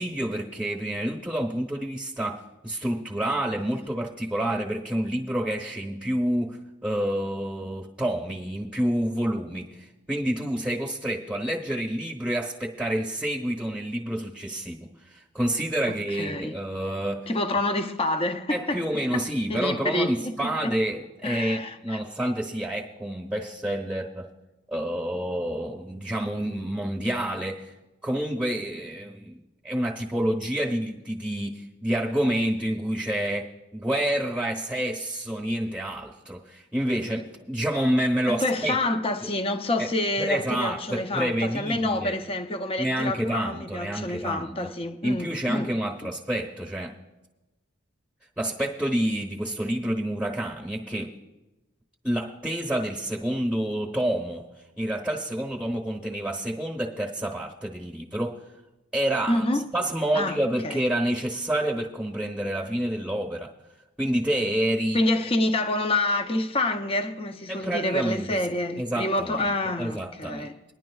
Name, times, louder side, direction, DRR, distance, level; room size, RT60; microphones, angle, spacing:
voice 1, 0.0-17.3 18.5-24.3 24.7-27.7 28.0-38.7 39.8-39.9 40.2-42.2 42.8-44.6 45.0-47.0 48.4-51.2 52.0-54.5 54.8-58.4 58.9-63.5 64.0-65.0 67.5-68.5 68.8-69.5 69.8-70.5, right 1 dB, 5° right, 0.9 m, -28 dB
voice 2, 15.9-16.5 17.3-18.8 19.1-20.3 20.6-20.8 21.2-22.0 38.3-45.7 59.3-59.7 60.1-60.4 60.6-60.8 64.9-70.6, left 2 dB, 25° left, 0.6 m, -27 dB
22.5 x 10.5 x 2.3 m
head